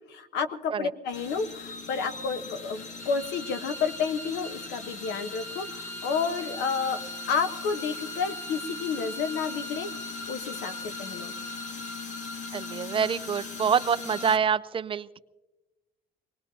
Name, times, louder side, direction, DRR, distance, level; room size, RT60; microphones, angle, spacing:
voice 1, 0.1-7.0 7.3-9.9 10.3-11.3, left 5 dB, 85° left, 9 dB, 1.1 m, -30 dB
sound 1, 1.1-14.4, left 2 dB, 45° left, 1.3 m, -38 dB
voice 2, 12.5-15.2, right 7 dB, 30° right, 15 dB, 0.5 m, -26 dB
23.5 x 20.0 x 2.8 m, 1.1 s
cardioid pair, 110°, 17 cm